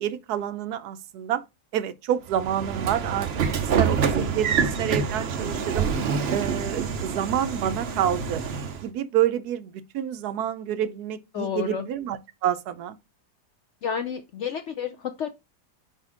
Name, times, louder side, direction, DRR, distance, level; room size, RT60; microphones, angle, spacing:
voice 1, 0.0-1.4 1.7-3.3 3.8-5.9 6.3-8.4 8.8-12.9, right 10 dB, 75° right, 1.1 m, -28 dB
Train / Sliding door, 2.3-8.9, right 6 dB, 50° right, 0.8 m, -26 dB
voice 2, 11.3-11.8 13.8-15.3, left 7 dB, 70° left, 0.7 m, -30 dB
4.9 x 4.1 x 4.8 m
omnidirectional pair, 1.7 m